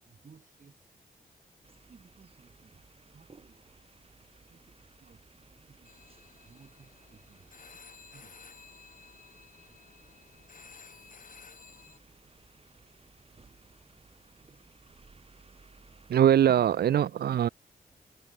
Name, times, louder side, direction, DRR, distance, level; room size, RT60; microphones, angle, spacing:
voice 1, 0.0-1.0 1.9-3.8 4.2-7.8 8.1-8.5, right 5 dB, 55° right, 4.7 m, -60 dB
sound 1, 1.6-16.2, right 4 dB, 35° right, 2.5 m, -59 dB
sound 2, 5.8-12.0, left 5 dB, 55° left, 5.4 m, -54 dB
voice 2, 16.1-17.5, right 10 dB, 85° right, 0.6 m, -22 dB
cardioid pair, 80°, 16 cm